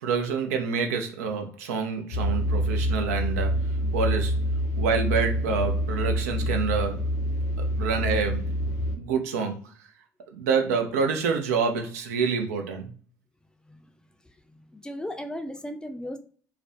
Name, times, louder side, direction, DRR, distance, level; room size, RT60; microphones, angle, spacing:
voice 1, 0.0-3.6 3.9-4.4 4.8-7.1 7.6-8.6 9.0-9.6 10.3-12.9, right 5 dB, 85° right, 0.4 m, -27 dB
sound 1, 2.1-9.0, equal, 80° left, 0.5 m, -26 dB
voice 2, 13.6-14.0 14.5-16.2, equal, 10° left, 0.4 m, -36 dB
2.4 x 2.1 x 2.4 m
hypercardioid pair, 60°, 8 cm